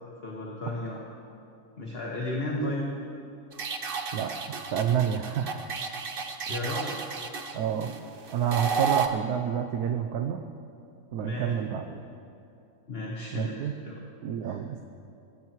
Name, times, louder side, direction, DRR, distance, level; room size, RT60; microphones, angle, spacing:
voice 1, 0.2-1.0 1.8-2.9 6.5-7.0 11.2-11.5 12.9-14.0 14.4-14.6, left 1 dB, 40° left, -2 dB, 1.6 m, -33 dB
sound 1, 3.5-9.1, right 6 dB, 45° right, 0.9 m, -32 dB
voice 2, 4.7-5.6 6.5-6.6 7.5-7.9 8.3-10.4 11.1-12.0 13.3-13.7 14.2-14.8, right 8 dB, 85° right, 5 dB, 1.2 m, -28 dB
22.5 x 16.5 x 3.1 m, 2.7 s
omnidirectional pair, 1.6 m